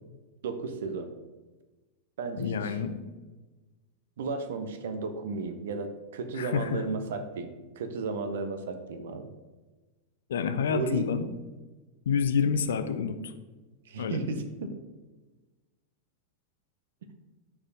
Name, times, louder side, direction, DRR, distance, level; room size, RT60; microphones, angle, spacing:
voice 1, 0.4-1.1 2.2-2.7 4.2-9.3 10.7-11.1 13.8-14.8, right 4 dB, 60° right, 8 dB, 0.7 m, -34 dB
voice 2, 2.4-3.0 6.3-6.8 10.3-11.3 12.1-13.3 14.0-14.4, left 6 dB, 60° left, 9 dB, 0.6 m, -28 dB
6.5 x 4.9 x 5.0 m, 1.2 s
figure-of-eight pair, 90°, 0 cm